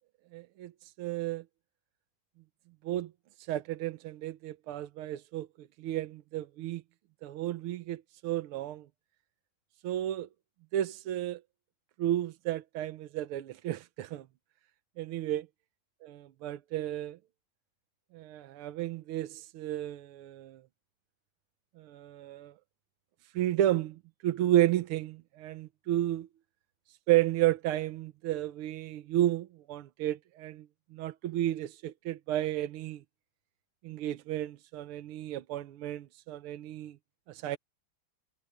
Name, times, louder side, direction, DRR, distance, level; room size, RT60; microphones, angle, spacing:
voice 1, 0.3-1.4 2.8-3.1 3.4-6.8 7.2-8.9 9.8-10.3 10.7-11.4 12.0-14.3 15.0-15.5 16.0-17.2 18.1-20.6 21.8-22.5 23.3-26.3 27.1-30.7 30.9-33.0 33.8-37.0 37.3-37.6, right 13 dB, 85° right, 1.7 m, -32 dB
omnidirectional pair, 2.4 m